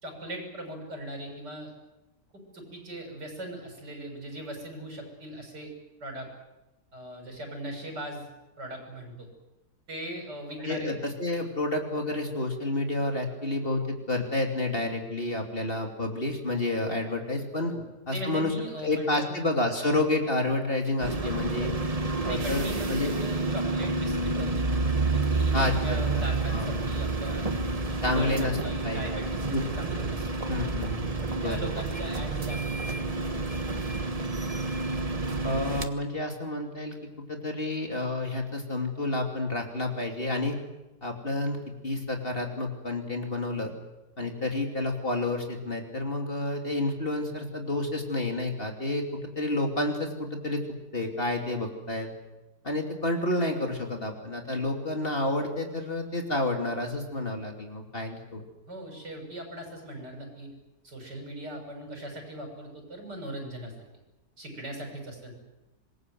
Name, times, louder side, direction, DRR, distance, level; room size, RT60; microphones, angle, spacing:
voice 1, 0.0-1.7 2.3-5.7 6.0-6.3 6.9-8.3 8.6-9.3 9.9-10.9 17.6-17.8 18.1-19.4 21.2-21.7 22.3-24.6 25.1-30.3 31.2-33.0 58.7-60.5 60.8-63.7 64.4-65.3, right 1 dB, 75° right, 2 dB, 7.3 m, -39 dB
voice 2, 10.6-17.7 18.1-18.5 18.8-21.7 22.2-23.1 25.5-26.8 28.0-28.6 28.8-29.2 29.5-29.6 30.5-31.7 35.4-36.9 37.3-40.6 41.0-41.6 41.8-43.7 44.2-50.6 50.9-52.1 52.6-58.4, left 2 dB, 30° left, 2 dB, 3.1 m, -30 dB
sound 1, 21.0-35.9, right 3 dB, 25° right, 1.2 m, -29 dB
26.0 x 21.5 x 7.9 m, 1.0 s
omnidirectional pair, 1.8 m